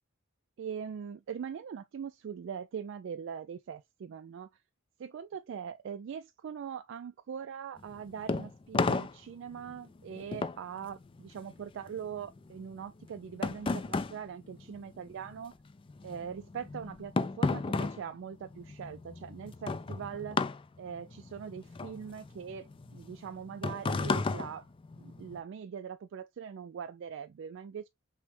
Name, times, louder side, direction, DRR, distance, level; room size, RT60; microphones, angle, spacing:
voice 1, 0.6-4.5 5.0-15.5 16.0-20.4 20.8-24.7 25.0-27.9, right 7 dB, 60° right, 0.3 m, -42 dB
sound 1, 7.8-15.4 15.7-25.4, left 3 dB, 25° left, 0.3 m, -34 dB
6.1 x 2.1 x 3.1 m
head